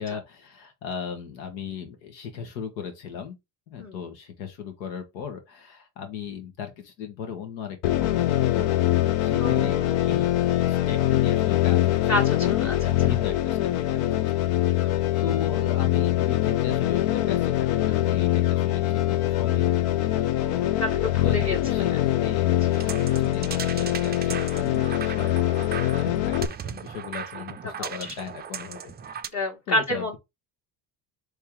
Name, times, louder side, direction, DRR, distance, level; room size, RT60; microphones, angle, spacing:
voice 1, 0.0-3.4 3.7-9.8 10.1-10.3 10.7-12.7 13.0-20.8 21.2-21.9 22.2-28.9 29.7-30.2, left 7 dB, 90° left, 1.5 m, -37 dB
sound 1, 7.8-26.5, left 14 dB, 70° left, 0.6 m, -23 dB
voice 2, 9.4-10.1 12.1-12.4 12.6-12.9 14.8-15.0 20.8-21.6 27.8-27.9 29.3-30.2, left 1 dB, 35° left, 1.4 m, -28 dB
sound 2, 22.7-29.3, right 8 dB, 20° right, 0.4 m, -37 dB
3.5 x 3.4 x 4.4 m
supercardioid pair, 85°, 49 cm